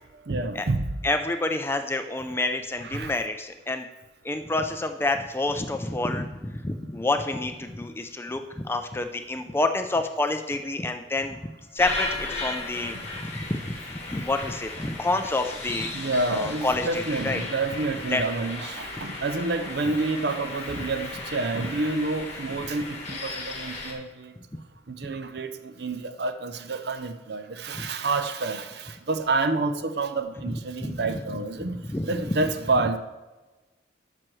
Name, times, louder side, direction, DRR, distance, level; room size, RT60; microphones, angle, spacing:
voice 1, 0.0-1.0 2.8-3.1 12.9-13.1 15.9-24.3 24.9-33.0, right 3 dB, 60° right, 9 dB, 0.6 m, -29 dB
voice 2, 1.0-3.9 4.2-11.4 11.7-15.9 16.3-17.4 18.1-18.2 27.7-27.9 30.8-31.0 31.8-32.4, left 2 dB, 15° left, 7 dB, 0.3 m, -28 dB
sound 1, 11.8-23.9, left 2 dB, 35° left, 1.3 m, -36 dB
12.0 x 6.1 x 3.1 m, 1.2 s
head